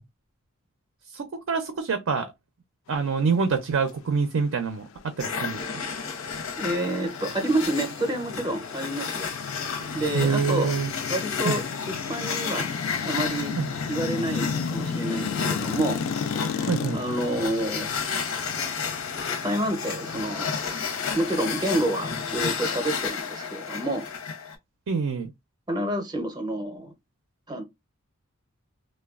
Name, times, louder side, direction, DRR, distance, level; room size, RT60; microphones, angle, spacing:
voice 1, 1.1-2.3 2.9-5.6 10.1-10.9 11.4-11.6 13.6-13.7 16.7-17.0 24.9-25.3, right 5 dB, 75° right, 0.5 m, -26 dB
sound 1, 5.0-21.7, left 5 dB, 65° left, 0.3 m, -35 dB
sound 2, 5.2-24.6, left 5 dB, 90° left, 0.7 m, -32 dB
voice 2, 6.6-9.3 9.9-10.8 11.1-12.7 13.0-13.6 13.9-16.0 16.5-17.9 19.4-20.5 21.1-24.1 25.7-26.9 27.5-27.6, right 1 dB, 20° right, 0.6 m, -29 dB
3.1 x 2.2 x 2.3 m
head